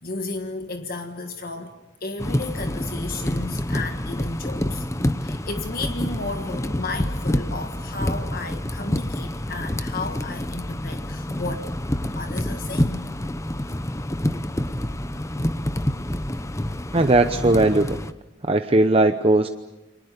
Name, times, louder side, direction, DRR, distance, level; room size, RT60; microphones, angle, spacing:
voice 1, 0.0-4.8 5.2-11.7 12.1-13.1 13.7-13.8, left 3 dB, 50° left, 6 dB, 1.5 m, -33 dB
sound 1, 2.2-18.1, left 1 dB, 15° left, 0.9 m, -27 dB
voice 2, 16.9-18.0 18.4-19.5, right 2 dB, 30° right, 8 dB, 0.8 m, -18 dB
29.5 x 24.0 x 6.7 m, 1.0 s
head